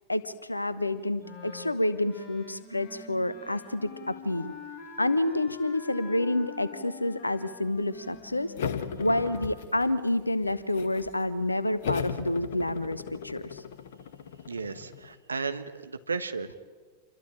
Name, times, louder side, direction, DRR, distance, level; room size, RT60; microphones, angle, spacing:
voice 1, 0.1-4.5 5.0-8.5 9.0-13.6, left 1 dB, 85° left, 15 dB, 0.9 m, -29 dB
Wind instrument woodwind instrument, 1.2-9.5, left 4 dB, 30° left, 6.1 m, -45 dB
sound 1, 8.6-10.1 10.4-11.2 11.8-15.1, left 7 dB, 60° left, 1.6 m, -36 dB
voice 2, 14.5-16.6, right 4 dB, 75° right, 9 dB, 1.2 m, -34 dB
27.5 x 23.0 x 8.8 m, 1.4 s
figure-of-eight pair, 90°, 0 cm